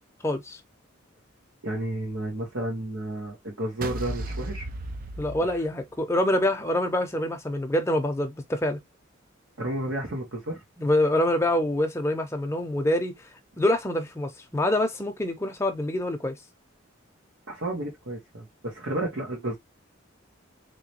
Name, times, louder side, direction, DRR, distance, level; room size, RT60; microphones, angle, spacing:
voice 1, 0.2-0.6 5.2-8.8 10.8-13.1 13.6-16.4, left 1 dB, 15° left, 0.6 m, -25 dB
voice 2, 1.6-4.7 9.6-10.6 17.5-19.6, right 1 dB, 75° right, 1.4 m, -31 dB
sound 1, 3.8-6.1, right 2 dB, 45° right, 0.5 m, -35 dB
3.2 x 3.0 x 2.8 m
head